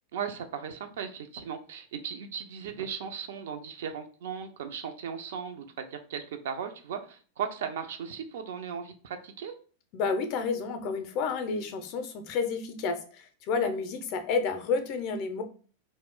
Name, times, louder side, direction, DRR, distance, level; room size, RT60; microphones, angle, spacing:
voice 1, 0.1-9.5, right 7 dB, 55° right, 7 dB, 0.4 m, -37 dB
voice 2, 9.9-15.4, left 5 dB, 40° left, 7 dB, 0.4 m, -30 dB
2.4 x 2.1 x 3.5 m, 0.41 s
figure-of-eight pair, 90°, 0 cm